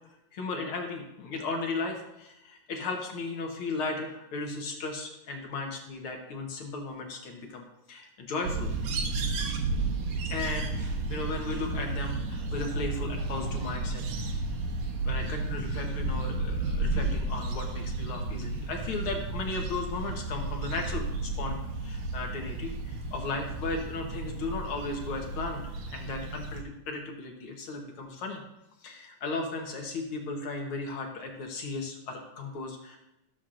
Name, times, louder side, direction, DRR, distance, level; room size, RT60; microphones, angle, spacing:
voice 1, 0.3-8.7 10.2-14.4 15.1-21.6 21.8-25.6 25.9-28.4 28.8-33.0, left 3 dB, 60° left, 2 dB, 1.5 m, -36 dB
sound 1, 8.4-26.6, right 3 dB, 75° right, 2.2 m, -32 dB
14.0 x 7.1 x 2.5 m, 0.91 s
omnidirectional pair, 3.6 m